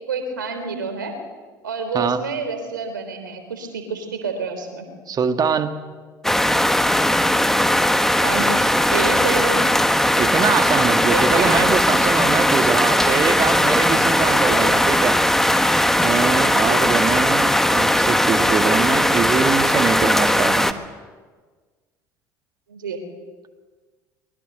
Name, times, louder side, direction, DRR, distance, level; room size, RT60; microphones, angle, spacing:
voice 1, 0.1-1.1 1.6-4.9 8.2-9.6 11.0-11.6 14.2-14.8 16.5-16.8 22.7-23.0, right 4 dB, 85° right, 7 dB, 3.3 m, -28 dB
voice 2, 5.1-5.7 10.2-15.1 16.0-20.7, right 6 dB, 40° right, 7 dB, 2.0 m, -23 dB
sound 1, 6.2-20.7, left 1 dB, 5° left, 1.4 m, -18 dB
23.5 x 21.0 x 6.8 m, 1.4 s
hypercardioid pair, 65°, 10 cm